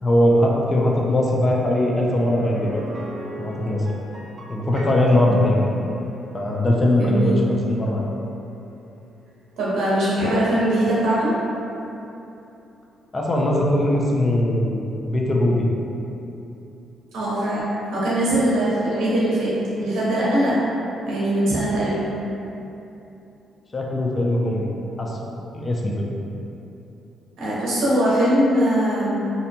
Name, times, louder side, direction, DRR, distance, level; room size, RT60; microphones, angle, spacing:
voice 1, 0.0-2.8 3.4-3.9 4.5-5.6 6.3-8.0 13.1-15.7 23.7-24.7 25.0-25.2 25.5-26.1, left 1 dB, 30° left, -2 dB, 0.4 m, -20 dB
sound 1, 2.3-12.0 12.4-12.5 14.9-15.0, right 1 dB, 50° right, 0.3 m, -41 dB
voice 2, 7.0-7.4 9.6-11.4 17.1-19.5 19.8-20.6 21.0-22.0 27.4-29.2, right 1 dB, 75° right, -9 dB, 0.7 m, -21 dB
2.6 x 2.1 x 2.7 m, 2.9 s
cardioid pair, 90°, 0 cm